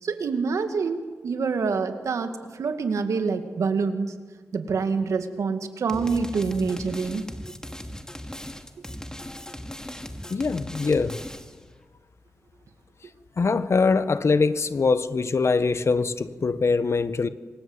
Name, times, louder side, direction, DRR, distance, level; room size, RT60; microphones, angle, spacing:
voice 1, 0.0-4.1 4.5-7.3, right 5 dB, 90° right, 2.3 m, -26 dB
sound 1, 5.9-11.6, equal, 15° left, 2.6 m, -38 dB
voice 2, 10.3-11.2 13.4-17.3, left 4 dB, 60° left, 1.4 m, -23 dB
28.0 x 23.5 x 8.2 m
cardioid pair, 55°, 5 cm